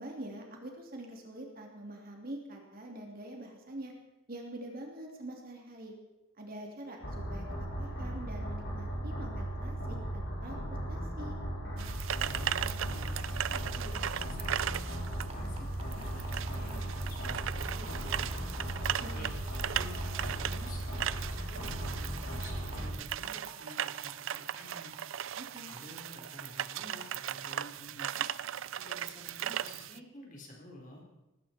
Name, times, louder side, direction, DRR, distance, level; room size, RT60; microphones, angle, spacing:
voice 1, 0.0-3.9 4.3-5.9 6.4-10.6 10.9-11.3 19.0-19.4 25.4-25.7, right 1 dB, 45° right, 1 dB, 3.1 m, -45 dB
sound 1, 7.0-22.9, right 1 dB, 65° left, 7.1 m, -37 dB
sound 2, 11.8-30.0, right 10 dB, 70° right, 0.4 m, -38 dB
voice 2, 12.2-18.3 18.8-19.3 19.7-24.9 25.7-28.3 28.8-31.0, left 1 dB, 40° left, -1 dB, 4.1 m, -51 dB
sound 3, 13.6-13.7 14.1-14.2 14.7-14.8 15.3-19.0 19.5-19.6 20.0-20.1 20.5-20.6 21.1-21.2 21.6-21.7 22.2-22.3 22.7-22.8 23.2-27.0 27.5-27.6, right 4 dB, 30° right, 1.9 m, -48 dB
18.5 x 16.5 x 4.5 m, 1.0 s
head